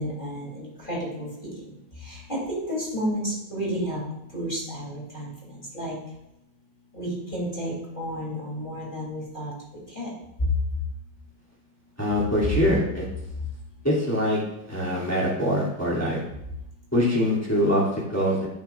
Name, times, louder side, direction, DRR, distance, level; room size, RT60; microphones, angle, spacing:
voice 1, 0.0-4.0 4.3-6.0 6.9-9.5 9.9-10.2, equal, 25° left, -5 dB, 3.4 m, -32 dB
voice 2, 12.0-13.0 13.8-14.4 14.7-16.2 16.9-18.5, equal, 10° left, -7 dB, 2.7 m, -23 dB
11.0 x 10.5 x 2.5 m, 0.82 s
omnidirectional pair, 1.9 m